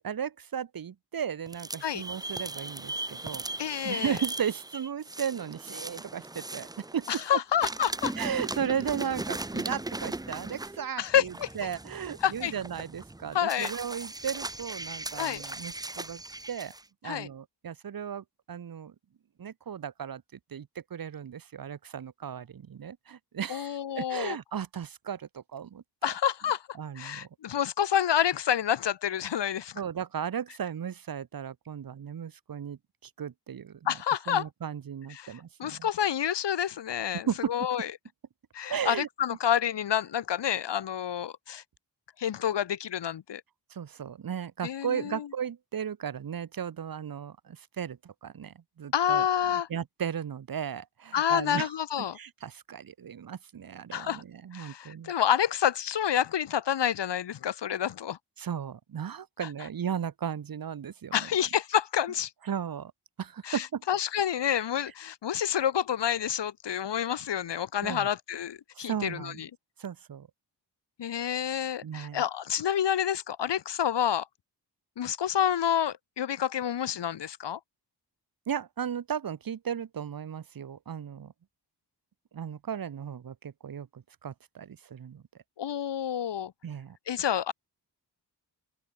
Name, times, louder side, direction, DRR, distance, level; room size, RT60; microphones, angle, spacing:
voice 1, 0.0-3.4 3.8-7.1 8.2-16.2 16.5-16.7 17.0-18.9 19.4-20.2 20.5-26.1 26.8-27.3 29.8-33.8 34.3-35.9 37.3-37.5 38.7-39.1 43.7-49.3 49.5-51.7 52.1-55.1 58.4-61.3 62.5-62.9 63.2-63.8 67.8-68.1 68.8-69.4 69.8-70.3 71.8-72.2 78.5-81.3 82.3-85.2 86.6-87.0, right 8 dB, 55° right, 1.0 m, -35 dB
sound 1, 1.5-7.3 7.6-16.8, right 2 dB, 10° right, 0.6 m, -38 dB
voice 2, 3.6-4.2 7.1-8.1 11.0-11.5 12.2-12.5 13.3-13.7 15.2-15.4 17.0-17.3 23.5-24.4 26.0-26.6 26.9-29.8 33.9-34.5 35.1-37.9 38.5-41.6 42.2-43.4 44.6-45.3 48.9-49.7 51.1-52.2 53.9-54.2 54.5-58.2 61.1-62.3 63.4-69.5 71.0-74.3 75.0-77.6 85.6-86.5 87.1-87.5, left 9 dB, 80° left, 1.3 m, -28 dB
wide cardioid pair, 110°, 41 cm